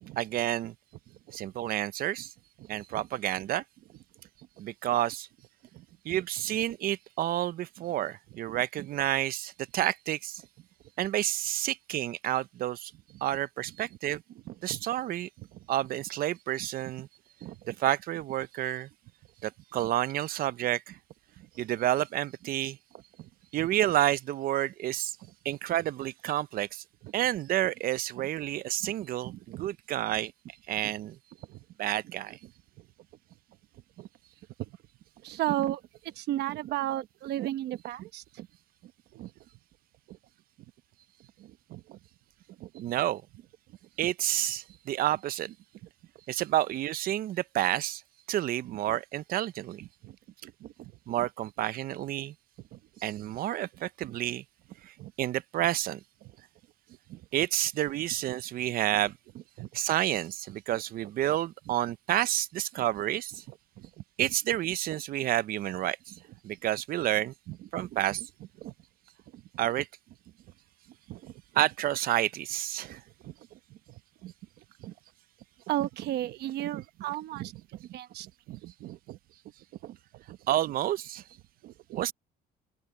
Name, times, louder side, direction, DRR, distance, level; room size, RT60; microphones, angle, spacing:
voice 1, 0.2-0.7 1.3-2.3 2.7-3.6 4.6-5.3 6.0-10.4 11.0-12.9 13.2-14.2 14.6-15.3 15.7-17.1 17.7-18.9 19.4-21.0 21.6-22.8 23.5-25.2 25.4-26.8 27.1-30.3 30.7-31.2 31.8-32.4 42.8-43.2 44.0-45.5 46.3-48.0 48.3-49.8 51.1-52.3 53.0-54.4 54.9-56.0 57.3-59.1 59.7-63.4 64.2-66.0 66.4-67.3 67.7-68.2 69.6-69.9 71.5-73.0 80.5-81.2 82.0-82.1, right 13 dB, 60° right, 0.5 m, -29 dB
voice 2, 29.2-29.7 30.8-30.9 31.5-31.6 34.0-34.1 35.2-35.8 36.2-38.5 39.1-39.3 40.1-40.2 41.4-42.0 42.6-42.8 50.0-50.1 50.4-50.9 52.7-52.8 54.1-54.2 55.0-55.1 57.1-57.2 59.6-59.7 63.8-63.9 67.8-67.9 68.6-68.7 71.1-71.3 73.2-73.3 74.2-74.3 74.8-74.9 75.7-79.2 79.8-80.0 80.3-80.4 81.6-82.0, right 14 dB, 75° right, 1.1 m, -35 dB
open air
cardioid pair, 110°, 17 cm